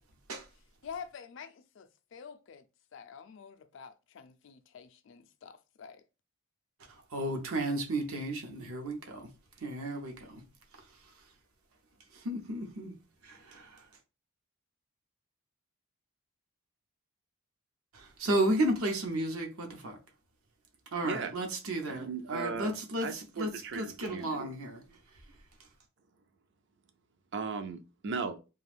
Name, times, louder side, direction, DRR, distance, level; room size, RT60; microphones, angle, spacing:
voice 1, 0.8-1.9 2.1-2.6 2.9-6.0, left 6 dB, 55° left, 0.3 m, -47 dB
voice 2, 6.9-9.3 9.6-10.4 10.7-11.1 12.1-12.9 13.2-13.9 17.9-20.0 20.9-24.8, right 1 dB, 75° right, 0.7 m, -33 dB
voice 3, 21.9-22.7 23.0-24.5 27.3-28.4, right 4 dB, 50° right, 0.4 m, -37 dB
2.5 x 2.3 x 3.3 m
head